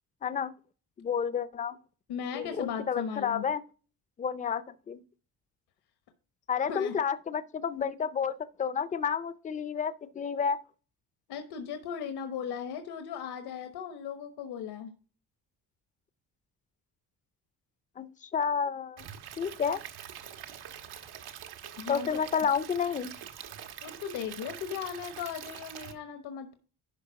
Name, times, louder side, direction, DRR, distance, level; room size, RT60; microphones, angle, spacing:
voice 1, 0.2-0.5 1.0-1.8 2.3-3.6 4.2-5.0 6.5-10.6 18.0-19.0 19.4-19.8 21.9-23.1, left 7 dB, 20° left, 0.4 m, -30 dB
voice 2, 2.1-3.5 6.7-7.0 11.3-14.9 21.8-22.2 23.8-26.5, left 7 dB, 80° left, 1.1 m, -37 dB
Stream / Liquid, 19.0-25.9, right 9 dB, 80° right, 1.3 m, -45 dB
11.5 x 4.5 x 4.6 m
cardioid pair, 170°, 39 cm